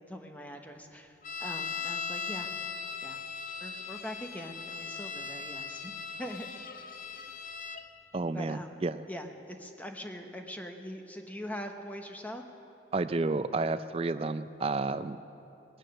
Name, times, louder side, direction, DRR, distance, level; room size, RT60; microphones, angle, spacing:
voice 1, 0.1-2.6 3.0-3.2 3.6-6.5 6.8-6.9 8.3-8.8 9.1-12.4, equal, 10° left, 5 dB, 0.8 m, -42 dB
sound 1, 1.2-7.8, left 5 dB, 45° left, 0.6 m, -39 dB
voice 2, 8.1-9.0 12.9-15.2, right 3 dB, 30° right, 12 dB, 0.4 m, -31 dB
19.0 x 9.0 x 6.4 m, 2.9 s
head